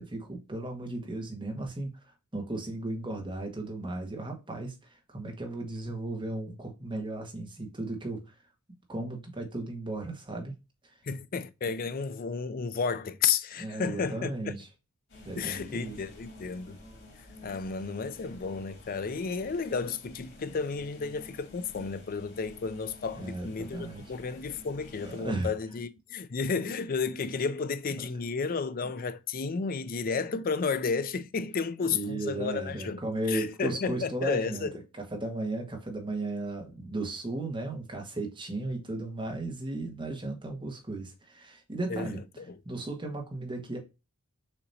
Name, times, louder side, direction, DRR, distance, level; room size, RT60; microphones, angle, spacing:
voice 1, 0.0-1.9 2.3-8.3 8.9-10.5 10.8-11.0 13.6-14.7 15.2-15.9 23.2-24.0 25.0-25.5 27.9-28.0 31.9-34.7 35.0-42.2 42.6-43.8, right 2 dB, 20° right, 1.4 m, -35 dB
voice 2, 11.0-14.6 15.4-16.8 17.4-33.0 33.3-34.7 41.9-42.1 42.4-42.6, left 5 dB, 40° left, 0.4 m, -32 dB
sound 1, 15.1-25.3, left 1 dB, 55° left, 2.4 m, -51 dB
6.6 x 2.9 x 2.7 m
head